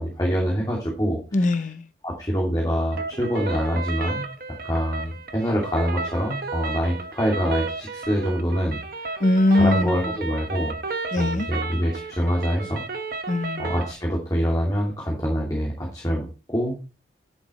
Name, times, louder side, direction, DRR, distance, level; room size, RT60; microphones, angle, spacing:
voice 1, 0.0-1.5 2.0-4.3 4.6-9.2 9.5-10.8 11.2-12.8 13.6-16.8, equal, 20° left, 2.7 m, -25 dB
voice 2, 1.3-1.9 9.2-10.1 11.1-11.5 13.3-13.7, left 2 dB, 40° left, 0.6 m, -21 dB
sound 1, 2.9-13.9, right 3 dB, 50° right, 1.1 m, -33 dB
10.5 x 6.5 x 4.3 m
head